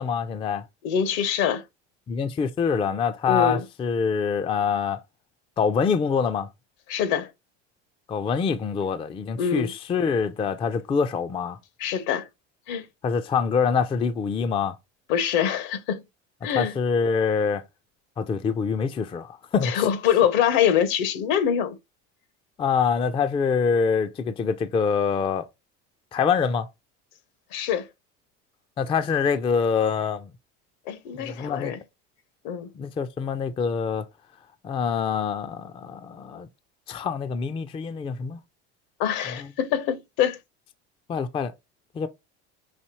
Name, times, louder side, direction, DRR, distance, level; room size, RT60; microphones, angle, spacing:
voice 1, 0.0-0.6 2.1-5.0 5.6-6.5 8.1-11.6 13.0-14.8 16.6-17.6 18.2-19.9 22.6-25.5 26.1-26.7 28.8-30.3 31.1-31.7 32.8-34.1 34.6-36.5 36.9-38.4 39.4-39.5 41.1-41.5 42.0-42.1, left 6 dB, 15° left, 0.3 m, -25 dB
voice 2, 0.8-1.6 3.3-3.6 6.9-7.3 9.4-9.7 11.8-12.3 12.7-12.9 15.1-16.0 16.4-16.7 19.6-21.8 27.5-27.9 30.9-31.8 32.4-32.7 39.0-40.4, left 9 dB, 70° left, 1.0 m, -24 dB
5.6 x 2.7 x 3.0 m
supercardioid pair, 105°, 34 cm